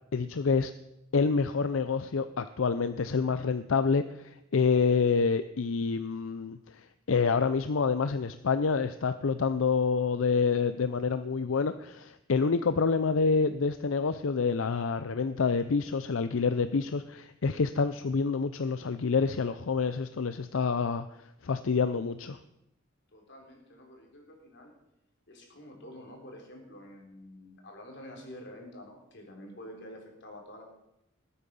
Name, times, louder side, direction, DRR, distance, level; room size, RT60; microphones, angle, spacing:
voice 1, 0.1-0.7 1.1-21.1 21.4-22.4, left 5 dB, 75° left, 11 dB, 0.5 m, -27 dB
voice 2, 23.1-24.7 25.3-30.6, left 1 dB, 60° left, 1 dB, 3.7 m, -48 dB
19.5 x 8.7 x 5.5 m, 0.87 s
head